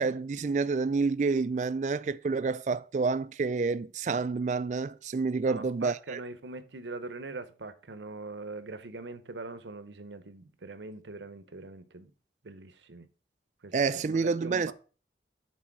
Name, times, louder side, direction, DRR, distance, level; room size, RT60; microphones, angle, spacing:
voice 1, 0.0-6.2 13.7-14.7, right 4 dB, 40° right, 0.3 m, -28 dB
voice 2, 5.5-12.1 12.4-13.1 13.6-13.7 14.0-14.7, right 3 dB, 90° right, 0.8 m, -42 dB
6.2 x 4.2 x 5.9 m
head